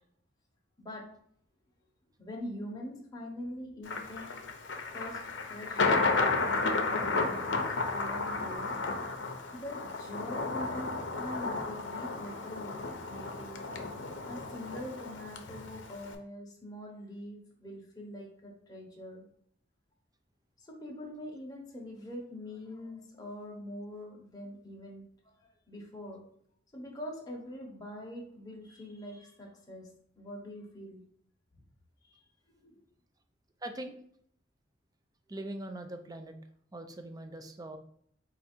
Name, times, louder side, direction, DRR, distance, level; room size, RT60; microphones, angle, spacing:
voice 1, 0.8-1.1 2.2-4.3 4.9-8.8 9.5-13.7 14.2-19.2 20.6-26.2 26.7-31.1 32.0-32.2 32.5-32.8, left 1 dB, 20° left, -2 dB, 1.0 m, -44 dB
Thunder, 3.9-16.1, left 3 dB, 70° left, 0.6 m, -33 dB
voice 2, 33.6-33.9 35.3-36.4 36.7-37.8, right 1 dB, 20° right, 7 dB, 0.4 m, -41 dB
4.6 x 2.5 x 4.3 m, 0.63 s
head